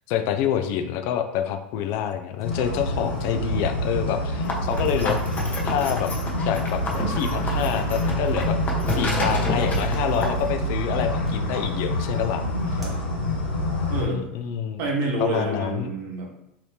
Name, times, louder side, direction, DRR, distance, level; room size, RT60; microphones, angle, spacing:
voice 1, 0.1-5.2 5.6-6.1 6.4-8.6 8.9-12.4 12.7-12.8 14.0-14.8 15.2-15.9, left 9 dB, 50° left, 7 dB, 0.3 m, -27 dB
sound 1, 1.8-1.9 2.2-3.5 4.9-9.8 10.1-10.9 11.2-12.2 12.5-12.9, right 2 dB, 5° right, 1.2 m, -43 dB
sound 2, 2.4-14.0, equal, 80° left, 0.8 m, -26 dB
sound 3, 4.4-10.5, left 2 dB, 30° left, 0.7 m, -31 dB
voice 2, 13.9-14.3 14.8-16.4, right 2 dB, 50° right, 0 dB, 0.9 m, -28 dB
2.8 x 2.7 x 3.1 m, 0.82 s
figure-of-eight pair, 80°, 6 cm